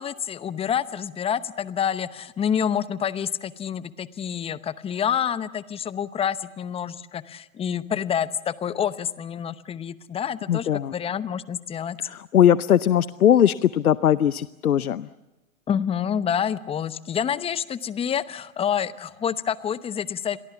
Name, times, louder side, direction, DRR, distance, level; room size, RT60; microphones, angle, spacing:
voice 1, 0.0-12.0 15.7-20.4, left 8 dB, 15° left, 16 dB, 0.9 m, -28 dB
voice 2, 10.5-10.9 12.0-15.1, left 10 dB, 90° left, 17 dB, 0.8 m, -20 dB
29.5 x 23.0 x 7.2 m, 1.0 s
hypercardioid pair, 125°, 42 cm